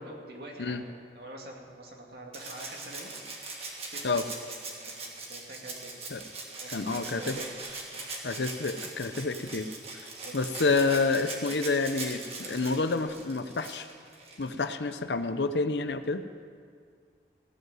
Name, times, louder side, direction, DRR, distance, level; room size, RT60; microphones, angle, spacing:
voice 1, 0.0-3.1 3.9-4.2 4.6-6.0 6.6-7.5 7.9-8.1 10.0-10.7 12.4-12.7, right 1 dB, 60° right, 0 dB, 2.3 m, -46 dB
Rattle (instrument), 2.3-14.6 16.0-16.1, right 3 dB, 35° right, 1.8 m, -41 dB
voice 2, 6.7-7.4 8.2-9.7 10.3-13.9 14.4-16.2, left 3 dB, 80° left, 10 dB, 0.8 m, -28 dB
15.5 x 8.1 x 9.2 m, 2.1 s
head